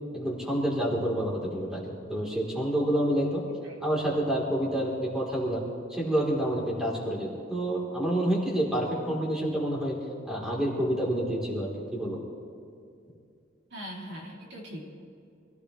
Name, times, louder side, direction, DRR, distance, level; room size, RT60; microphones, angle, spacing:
voice 1, 0.1-3.4 3.8-5.6 5.9-10.0 10.3-12.2, right 1 dB, 5° right, -4 dB, 3.6 m, -28 dB
voice 2, 3.5-3.8 13.7-14.9, equal, 60° right, -2 dB, 2.9 m, -41 dB
26.5 x 16.5 x 3.3 m, 2.5 s
head